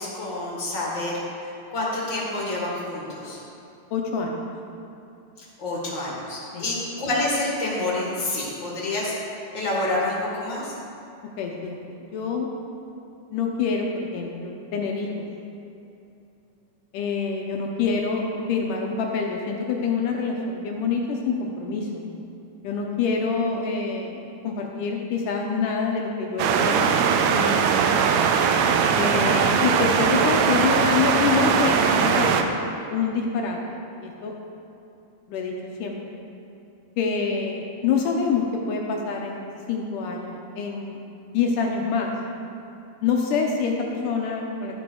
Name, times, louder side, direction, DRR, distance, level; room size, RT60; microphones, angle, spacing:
voice 1, 0.0-3.4 5.4-9.1 9.5-10.7 27.8-27.9, left 2 dB, 35° left, -5 dB, 2.0 m, -28 dB
voice 2, 3.9-4.4 6.5-6.6 11.4-12.5 13.3-15.1 16.9-22.1 22.6-27.8 29.0-32.6 32.9-34.3 35.3-35.5 35.8-36.2 37.0-41.0 41.3-42.1 43.0-44.8, left 5 dB, 75° left, 0 dB, 2.0 m, -26 dB
sound 1, 26.4-32.4, right 6 dB, 85° right, 2.6 m, -20 dB
13.5 x 9.3 x 3.9 m, 2.7 s
omnidirectional pair, 4.5 m